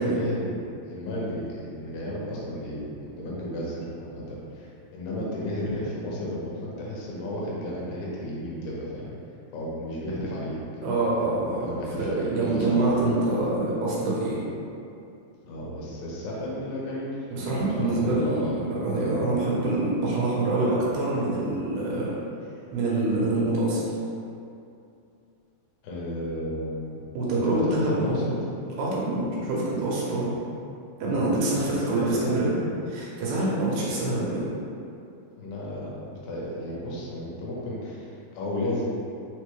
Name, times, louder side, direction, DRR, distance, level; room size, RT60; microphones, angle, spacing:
voice 1, 0.0-9.2 9.5-10.6 11.1-13.0 15.4-19.3 25.8-27.0 27.4-28.2 31.1-32.3 35.4-38.8, left 1 dB, 85° left, -5 dB, 2.6 m, -33 dB
voice 2, 10.8-11.7 12.0-14.4 17.3-22.2 22.7-23.8 27.1-28.4 28.8-30.3 31.0-32.6 32.9-34.5, right 2 dB, 80° right, -6 dB, 2.5 m, -25 dB
5.9 x 2.1 x 3.1 m, 2.6 s
omnidirectional pair, 4.3 m